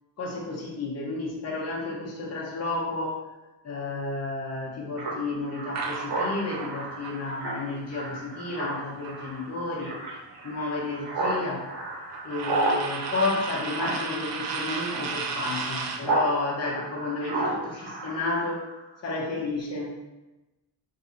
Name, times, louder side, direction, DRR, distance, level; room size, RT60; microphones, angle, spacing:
voice 1, 0.2-3.2 3.6-9.9 10.4-11.7 12.2-18.7 19.0-20.0, left 2 dB, 40° left, -3 dB, 1.0 m, -31 dB
Speech synthesizer, 5.0-16.3 16.6-18.8, right 2 dB, 70° right, 1.4 m, -33 dB
sound 1, 5.7-9.8 10.1-16.1, right 5 dB, 40° right, 0.5 m, -35 dB
3.8 x 2.8 x 4.0 m, 1.0 s
wide cardioid pair, 160°, 41 cm